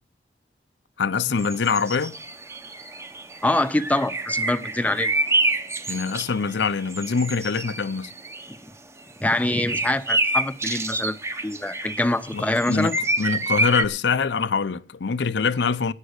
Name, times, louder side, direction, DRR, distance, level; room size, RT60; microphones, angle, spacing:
voice 1, 1.0-2.2 4.8-4.9 5.9-8.1 12.3-15.9, left 5 dB, 85° left, 0.6 m, -24 dB
sound 1, 1.4-8.6 9.4-13.9, right 2 dB, 15° right, 0.9 m, -28 dB
voice 2, 3.4-5.1 9.2-11.2 11.4-12.9, left 1 dB, 10° left, 0.6 m, -24 dB
11.5 x 9.0 x 6.5 m
head